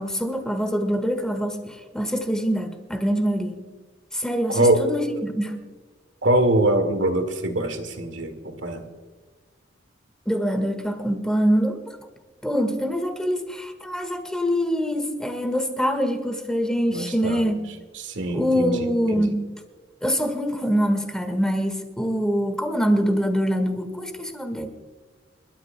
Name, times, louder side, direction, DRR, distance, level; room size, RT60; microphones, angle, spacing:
voice 1, 0.0-3.6 4.1-5.5 10.2-11.8 12.4-17.6 18.3-19.4 20.0-24.7, equal, 5° left, 6 dB, 1.6 m, -24 dB
voice 2, 4.5-4.8 6.2-8.8 16.9-17.6 18.0-19.4, right 1 dB, 80° right, 6 dB, 1.9 m, -23 dB
28.5 x 13.0 x 2.2 m, 1.4 s
head